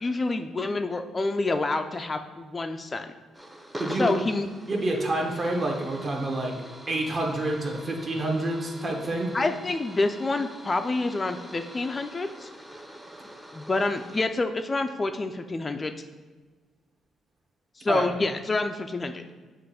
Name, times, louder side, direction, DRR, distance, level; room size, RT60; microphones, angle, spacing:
voice 1, 0.0-3.1 4.0-4.5 9.3-12.5 13.5-15.9 17.8-19.2, left 3 dB, 30° left, 7 dB, 0.4 m, -27 dB
sound 1, 3.3-14.3, right 1 dB, 10° right, 0.8 m, -43 dB
voice 2, 3.8-4.1 4.7-6.5 6.9-9.3 17.9-18.0, right 2 dB, 40° right, 0 dB, 1.3 m, -28 dB
7.4 x 2.5 x 5.6 m, 1.4 s
cardioid pair, 90°, 0 cm